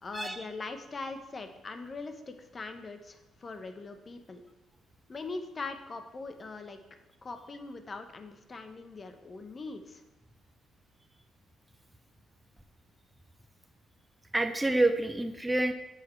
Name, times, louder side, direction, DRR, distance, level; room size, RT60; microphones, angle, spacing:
voice 1, 0.0-4.4 5.1-6.8 7.2-10.0, left 3 dB, 35° left, 7 dB, 0.9 m, -41 dB
voice 2, 14.3-15.7, right 2 dB, 10° right, 6 dB, 0.5 m, -27 dB
8.6 x 6.5 x 3.2 m, 1.0 s
cardioid pair, 90°, 0 cm